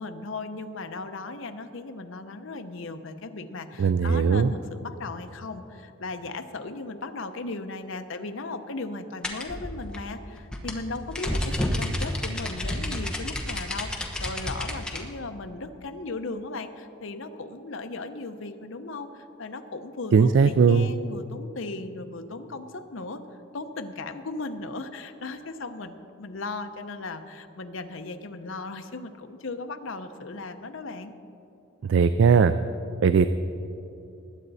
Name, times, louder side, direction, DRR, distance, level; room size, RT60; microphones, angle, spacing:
voice 1, 0.0-23.2 23.5-31.1, left 3 dB, 65° left, 8 dB, 0.7 m, -37 dB
voice 2, 3.8-4.5 20.1-20.9 31.8-32.5 33.0-33.3, right 5 dB, 60° right, 11 dB, 0.3 m, -19 dB
sound 1, 9.2-15.0, left 1 dB, 5° left, 1.0 m, -30 dB
20.0 x 8.8 x 4.1 m, 2.9 s
head